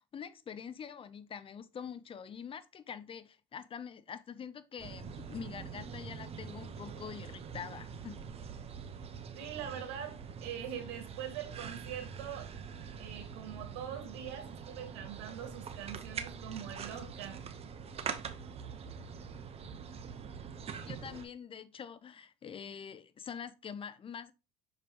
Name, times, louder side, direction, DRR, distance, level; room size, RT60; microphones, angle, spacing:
voice 1, 0.0-8.2 20.9-24.3, left 7 dB, 35° left, 0.7 m, -45 dB
sound 1, 4.8-21.2, right 6 dB, 40° right, 0.9 m, -44 dB
voice 2, 9.4-12.5 13.0-17.5, right 9 dB, 80° right, 1.8 m, -43 dB
6.6 x 5.3 x 3.0 m
supercardioid pair, 95°, 16 cm